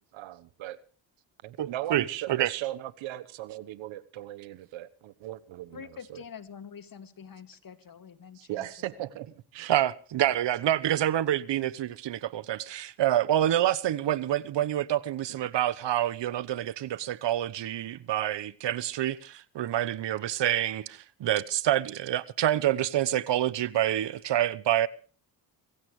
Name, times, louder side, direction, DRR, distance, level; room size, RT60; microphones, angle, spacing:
voice 1, 0.1-0.8 1.4-6.2 8.3-9.8 15.4-15.6, right 14 dB, 90° right, 1.3 m, -38 dB
voice 2, 1.6-2.5 9.7-20.9 21.2-24.9, right 12 dB, 65° right, 1.1 m, -27 dB
voice 3, 5.7-8.7, left 7 dB, 45° left, 2.3 m, -46 dB
25.5 x 16.0 x 3.3 m
cardioid pair, 70°, 45 cm